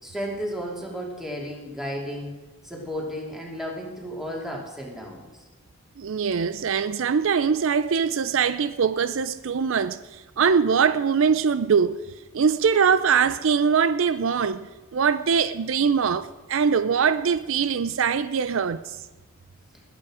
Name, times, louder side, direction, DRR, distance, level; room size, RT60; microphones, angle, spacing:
voice 1, 0.0-2.3 2.6-5.5, equal, ahead, 2.6 m, -33 dB
voice 2, 6.0-12.0 12.3-14.7 14.9-19.0, right 6 dB, 65° right, 0.4 m, -22 dB
20.0 x 8.3 x 4.9 m
head